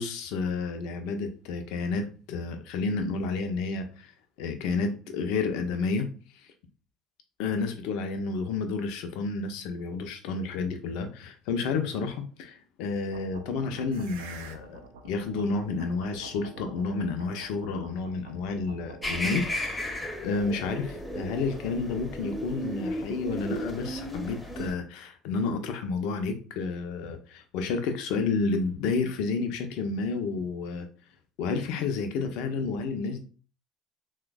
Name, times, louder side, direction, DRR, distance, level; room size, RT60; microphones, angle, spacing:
voice 1, 0.0-4.1 4.4-6.1 6.4-6.5 7.4-30.9 31.4-33.2, left 4 dB, 60° left, 0.4 m, -30 dB
sound 1, 13.1-19.7, right 4 dB, 70° right, 0.4 m, -47 dB
sound 2, 19.0-24.7, equal, 15° left, 0.6 m, -34 dB
3.1 x 2.1 x 2.3 m
figure-of-eight pair, 60°, 0 cm